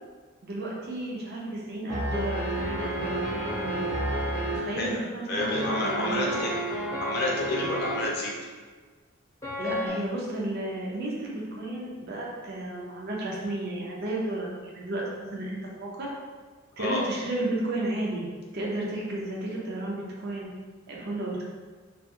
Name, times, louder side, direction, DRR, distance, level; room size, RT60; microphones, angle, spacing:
voice 1, 0.4-3.9 4.5-6.4 9.6-16.1 16.8-18.3 18.5-20.5 20.9-21.5, right 1 dB, 55° right, -3 dB, 0.6 m, -33 dB
sound 1, 1.9-4.6 5.4-8.0 9.4-9.9, right 1 dB, 15° left, 0.8 m, -30 dB
voice 2, 5.3-6.5 7.0-8.3 16.8-17.0, left 2 dB, 50° left, -3 dB, 0.6 m, -29 dB
2.4 x 2.2 x 2.9 m, 1.4 s
head